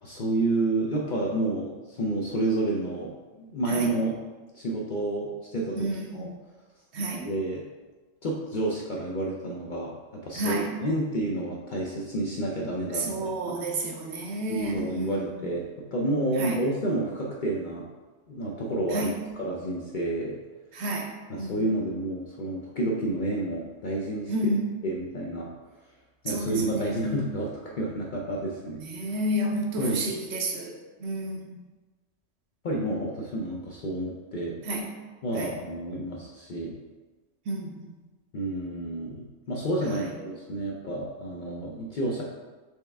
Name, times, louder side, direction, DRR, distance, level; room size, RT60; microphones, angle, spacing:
voice 1, 0.0-4.2 4.5-6.3 7.2-7.6 8.2-9.9 10.2-13.6 14.5-15.7 15.9-17.9 18.3-20.4 21.3-24.5 24.8-25.5 26.2-28.8 29.8-30.0 32.6-34.5 35.2-36.7 38.3-42.2, right 1 dB, 55° left, -2 dB, 0.6 m, -30 dB
voice 2, 5.8-6.4 6.9-7.3 10.3-10.7 12.9-15.4 16.4-16.6 18.9-19.1 20.7-21.1 21.4-21.6 24.3-24.7 26.3-27.3 28.8-30.7 31.0-31.6 34.6-34.8 35.3-35.5 37.5-37.9, right 1 dB, 65° right, 1 dB, 0.9 m, -31 dB
4.6 x 3.3 x 3.4 m, 1.2 s
omnidirectional pair, 1.3 m